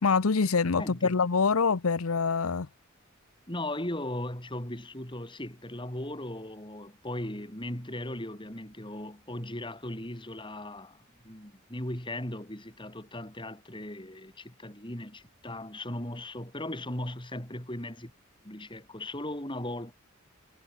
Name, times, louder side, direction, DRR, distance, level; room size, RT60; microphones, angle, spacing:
voice 1, 0.0-2.7, left 5 dB, 90° left, 0.8 m, -25 dB
voice 2, 0.8-1.2 3.5-18.1 18.4-19.9, left 1 dB, 25° left, 4.3 m, -38 dB
head